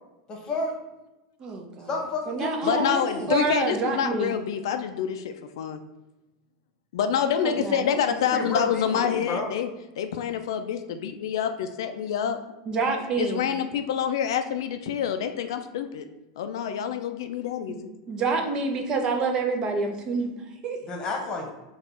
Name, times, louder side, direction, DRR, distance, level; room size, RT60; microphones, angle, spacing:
voice 1, 0.3-0.7 1.9-3.3 8.3-9.5 20.9-21.5, left 2 dB, 30° left, 1 dB, 1.1 m, -30 dB
voice 2, 1.4-1.9 2.3-2.9 3.3-4.4 7.3-8.6 12.7-13.4 17.7-17.8 18.1-20.8, right 4 dB, 35° right, 3 dB, 0.7 m, -28 dB
voice 3, 2.6-5.8 6.9-9.7 10.0-12.4 13.2-16.1 16.4-17.9, left 8 dB, 75° left, 8 dB, 0.3 m, -27 dB
4.2 x 2.4 x 4.1 m, 1.0 s
supercardioid pair, 120°, 2 cm